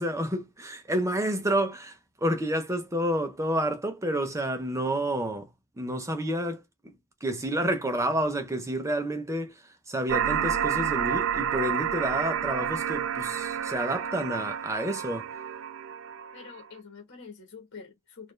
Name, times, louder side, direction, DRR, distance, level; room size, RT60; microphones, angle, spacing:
voice 1, 0.0-5.5 5.8-6.6 7.2-9.5 9.9-15.3, right 1 dB, 15° right, 0.7 m, -29 dB
sound 1, 10.1-16.6, right 8 dB, 60° right, 0.4 m, -30 dB
voice 2, 16.3-18.3, left 5 dB, 50° left, 1.2 m, -46 dB
4.0 x 2.5 x 3.2 m
head